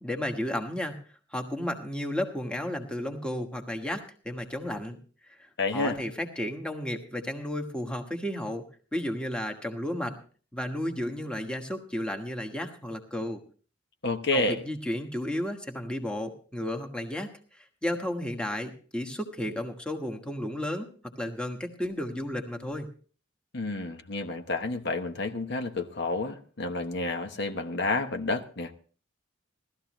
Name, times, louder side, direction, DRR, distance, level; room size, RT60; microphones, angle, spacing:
voice 1, 0.0-1.0 1.3-5.0 5.2-8.6 8.9-10.2 10.5-13.4 14.3-22.9, left 1 dB, 5° left, 3 dB, 1.3 m, -33 dB
voice 2, 5.6-6.0 14.0-14.6 23.5-28.7, left 2 dB, 55° left, 6 dB, 1.0 m, -30 dB
17.5 x 13.0 x 3.0 m, 0.40 s
head